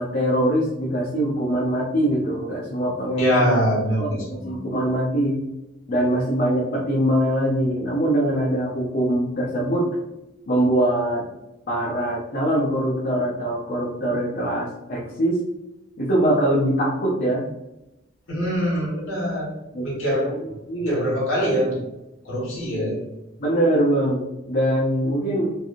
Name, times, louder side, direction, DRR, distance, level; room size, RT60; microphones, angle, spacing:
voice 1, 0.0-3.6 4.0-5.4 5.9-10.0 10.5-11.2 11.7-15.4 16.0-17.4 19.7-20.0 20.7-21.0 23.4-25.6, right 1 dB, 45° left, -4 dB, 0.6 m, -23 dB
voice 2, 3.2-4.6 18.3-20.4 20.8-21.8 22.2-23.1, equal, 70° left, -6 dB, 1.5 m, -24 dB
3.3 x 2.4 x 2.5 m, 0.92 s
head